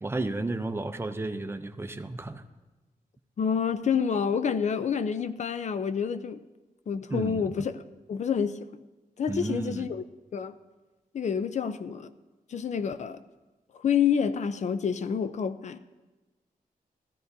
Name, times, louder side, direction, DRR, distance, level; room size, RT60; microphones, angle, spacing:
voice 1, 0.0-2.4 7.1-7.5 9.3-9.9, right 2 dB, 15° right, 9 dB, 0.5 m, -32 dB
voice 2, 3.4-6.4 6.9-7.8 8.1-8.8 9.2-10.0 10.3-10.6 11.1-12.1 12.5-13.2 13.8-15.8, left 7 dB, 55° left, 12 dB, 0.5 m, -28 dB
16.0 x 14.0 x 2.7 m, 1.2 s
wide cardioid pair, 170°, 15 cm